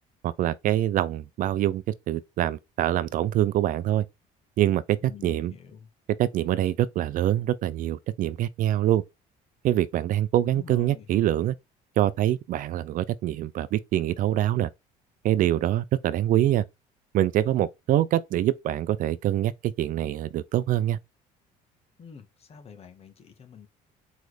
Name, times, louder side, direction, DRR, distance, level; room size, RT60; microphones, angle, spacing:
voice 1, 0.2-4.1 4.6-5.5 6.2-9.0 9.6-11.5 12.0-14.7 15.2-16.6 17.1-21.0, right 12 dB, 60° right, 0.5 m, -25 dB
voice 2, 5.0-5.9 10.4-11.1 22.0-23.7, left 7 dB, 40° left, 1.7 m, -46 dB
4.7 x 4.3 x 4.8 m
cardioid pair, 115°, 16 cm